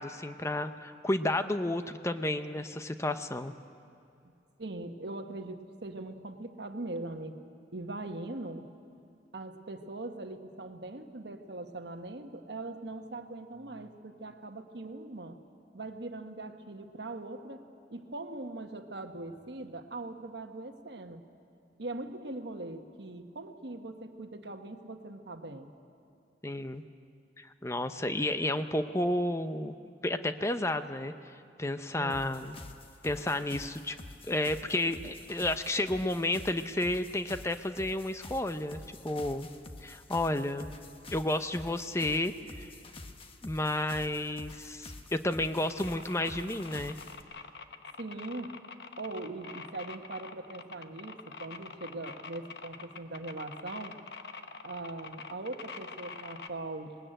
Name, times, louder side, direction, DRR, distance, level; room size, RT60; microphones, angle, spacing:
voice 1, 0.0-3.5 26.4-26.8 27.4-29.7 30.0-31.1 31.6-32.6 33.0-34.0 34.3-39.5 39.8-40.7 41.1-42.7 43.4-47.0, left 1 dB, 15° left, 9 dB, 0.7 m, -31 dB
voice 2, 4.6-7.4 7.7-8.7 9.3-15.4 15.7-21.2 21.8-25.7 31.9-32.5 48.0-48.6 49.0-54.0 54.6-57.0, right 2 dB, 70° right, 6 dB, 1.3 m, -41 dB
sound 1, 32.1-47.2, left 2 dB, 30° left, 1.2 m, -48 dB
sound 2, 45.6-56.5, left 4 dB, 65° left, 1.0 m, -45 dB
20.0 x 19.5 x 9.0 m, 2.5 s
head